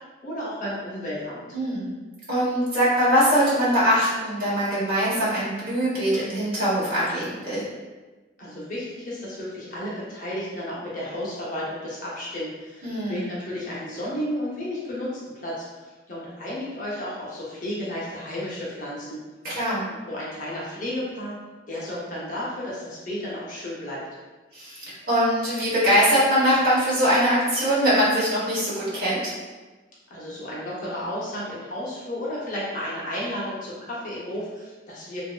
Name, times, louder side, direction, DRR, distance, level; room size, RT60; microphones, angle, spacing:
voice 1, 0.2-1.4 8.4-19.2 19.9-24.0 30.1-35.2, left 1 dB, 45° left, -7 dB, 0.7 m, -33 dB
voice 2, 1.5-1.9 2.3-7.6 12.8-13.4 19.4-19.9 24.5-29.3, equal, 50° right, -9 dB, 1.2 m, -22 dB
2.9 x 2.6 x 2.3 m, 1.3 s
head